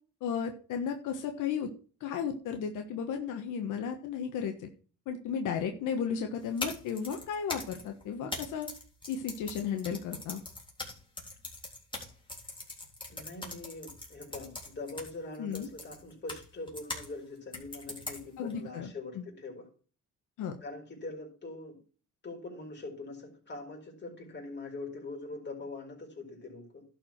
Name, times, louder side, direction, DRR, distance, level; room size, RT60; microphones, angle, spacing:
voice 1, 0.2-1.7 2.0-4.7 5.1-8.7 9.1-10.4 15.4-15.7 18.4-19.2 20.4-20.5, left 7 dB, 90° left, 4 dB, 1.4 m, -34 dB
sound 1, 6.4-17.1 17.5-18.5, left 2 dB, 15° left, 3.5 m, -42 dB
voice 2, 13.1-19.7 20.6-21.8 22.2-26.9, left 2 dB, 35° left, 1 dB, 4.5 m, -43 dB
11.5 x 4.9 x 5.9 m, 0.38 s
cardioid pair, 90°, 30 cm